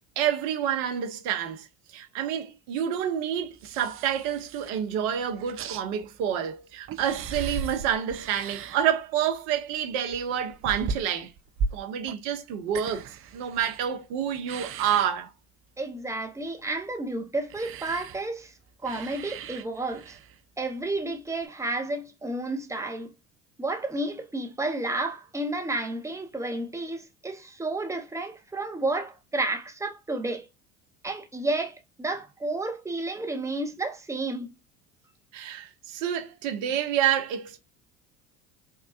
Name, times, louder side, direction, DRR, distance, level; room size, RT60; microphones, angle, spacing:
voice 1, 0.2-1.7 1.9-11.3 11.7-15.3 35.3-37.6, right 9 dB, 70° right, 0.9 m, -28 dB
sound 1, 3.5-4.9 5.2-6.4 6.7-9.0 9.4-14.1 14.3-15.1 17.5-20.4 21.4-21.5, right 5 dB, 35° right, 0.4 m, -37 dB
voice 2, 15.8-18.5 18.8-20.2 20.6-23.1 23.6-30.5 31.0-34.6, right 2 dB, 10° right, 0.7 m, -31 dB
3.6 x 2.3 x 2.4 m
hypercardioid pair, 70°, 39 cm